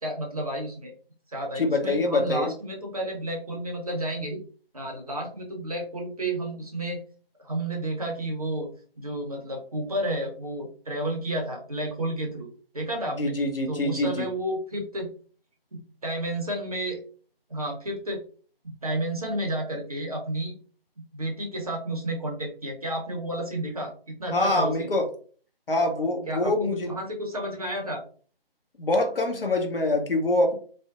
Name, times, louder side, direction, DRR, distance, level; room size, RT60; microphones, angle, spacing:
voice 1, 0.0-0.9 1.3-4.4 4.7-7.0 7.4-8.7 9.0-12.5 12.7-13.3 13.7-15.1 16.0-17.0 17.5-18.2 18.8-20.5 21.1-24.9 26.3-28.0, right 1 dB, 40° right, 0 dB, 0.6 m, -31 dB
voice 2, 1.6-2.5 13.2-14.3 24.3-25.1 25.7-26.9 28.8-30.6, left 2 dB, 65° left, 3 dB, 0.7 m, -25 dB
2.6 x 2.1 x 2.3 m, 0.43 s
figure-of-eight pair, 155°, 30 cm